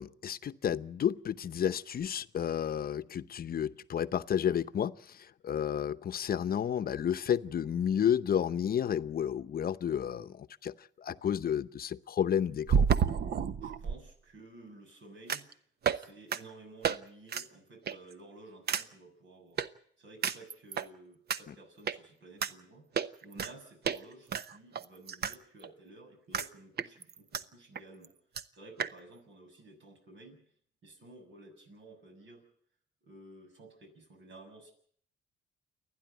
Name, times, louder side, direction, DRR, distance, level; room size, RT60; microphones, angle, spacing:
voice 1, 0.0-12.9 21.5-21.6, left 9 dB, 50° left, 13 dB, 0.8 m, -31 dB
sound 1, 10.2-10.3 12.7-14.0 15.3-15.5 15.8-16.0 16.3-16.4 16.8-17.0 17.3-17.5 17.9-18.1 18.7-18.8 19.6-19.7 20.2-20.9 21.3-21.4 21.9-22.0 22.4-22.5 23.0-23.5 23.8-24.0 24.3-25.4 25.6-25.7 26.3-26.5 26.8-27.4 27.8-27.9 28.0-28.1 28.4-28.5 28.8-28.9, right 7 dB, 55° right, 0.9 m, -30 dB
voice 2, 13.6-15.5 15.9-19.6 20.0-28.1 28.5-30.4 30.8-32.5 33.0-34.7, right 2 dB, 70° right, 4 dB, 6.9 m, -53 dB
29.0 x 10.5 x 9.2 m, 0.63 s
cardioid pair, 90°, 20 cm